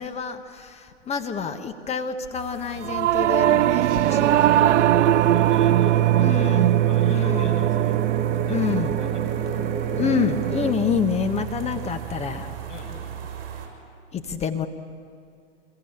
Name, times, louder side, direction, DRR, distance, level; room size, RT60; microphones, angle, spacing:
voice 1, 0.0-4.7 6.2-7.5 8.5-9.0 9.9-12.7 14.1-14.7, left 6 dB, 15° left, 7 dB, 1.3 m, -28 dB
sound 1, 2.3-13.7, right 9 dB, 45° right, 6.3 m, -39 dB
Singing / Musical instrument, 2.8-12.4, right 13 dB, 75° right, 0.5 m, -22 dB
sound 2, 4.0-10.7, right 6 dB, 25° right, 1.8 m, -29 dB
voice 2, 4.9-8.0 8.3-9.7 11.4-11.9 12.7-13.0, left 4 dB, 75° left, -1 dB, 7.6 m, -44 dB
26.5 x 22.0 x 9.0 m, 2.4 s
hypercardioid pair, 125°, 36 cm